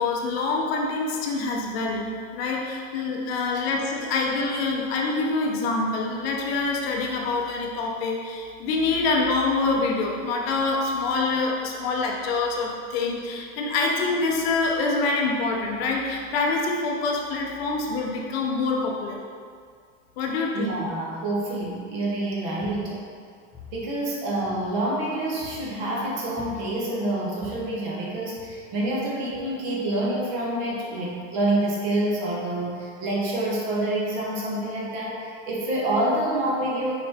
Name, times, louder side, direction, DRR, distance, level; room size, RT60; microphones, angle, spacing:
voice 1, 0.0-19.2 20.2-20.8, left 3 dB, 50° left, 0 dB, 0.8 m, -26 dB
voice 2, 20.5-23.0 23.7-36.9, right 1 dB, 40° right, -4 dB, 1.3 m, -27 dB
sound 1, 21.6-22.0 22.4-23.2 23.5-25.0 25.4-25.8 26.4-27.0 27.4-27.8 28.4-28.9 29.3-29.4, left 5 dB, 15° left, 1.2 m, -46 dB
6.1 x 4.7 x 3.6 m, 2.1 s
supercardioid pair, 180°, 39 cm